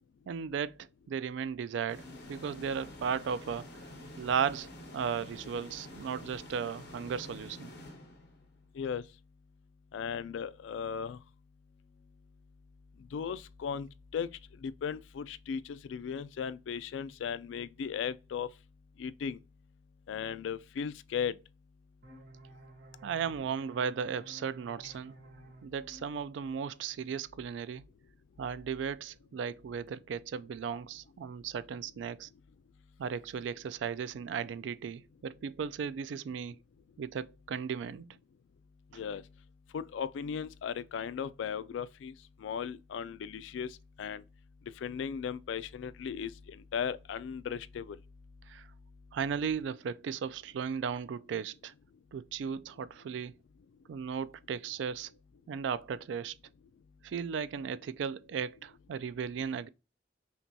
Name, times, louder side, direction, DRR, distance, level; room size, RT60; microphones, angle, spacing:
voice 1, 0.3-3.7 4.2-7.7 23.0-25.1 25.6-27.8 28.4-32.3 33.0-36.5 37.0-38.2 48.5-48.7 49.1-51.7 52.1-53.3 53.9-55.1 55.5-56.4 57.0-59.7, right 7 dB, 75° right, 0.3 m, -36 dB
sound 1, 1.9-8.6, left 1 dB, 65° left, 1.6 m, -48 dB
voice 2, 9.9-11.2 13.1-14.3 14.6-18.5 19.0-19.4 20.1-21.3 38.9-39.2 39.7-42.1 42.4-43.7 44.0-44.2 44.8-48.0, left 7 dB, 80° left, 0.3 m, -36 dB
sound 2, 22.0-27.4, right 1 dB, 50° right, 0.7 m, -54 dB
5.7 x 2.2 x 2.6 m
head